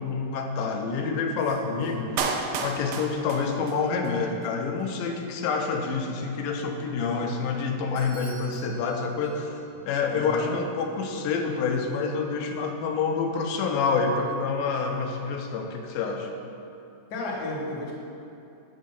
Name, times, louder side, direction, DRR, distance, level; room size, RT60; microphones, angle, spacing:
voice 1, 0.0-9.5 9.9-16.3, left 4 dB, 90° left, 3 dB, 2.5 m, -28 dB
voice 2, 1.6-2.2 10.1-10.5 17.1-17.9, left 2 dB, 60° left, -5 dB, 1.0 m, -34 dB
Clapping, 2.2-4.2 4.4-4.5, right 4 dB, 85° right, 2.5 m, -31 dB
Bell / Doorbell, 8.0-9.8, right 2 dB, 55° right, 2.3 m, -50 dB
7.3 x 6.5 x 5.4 m, 2.7 s
omnidirectional pair, 4.1 m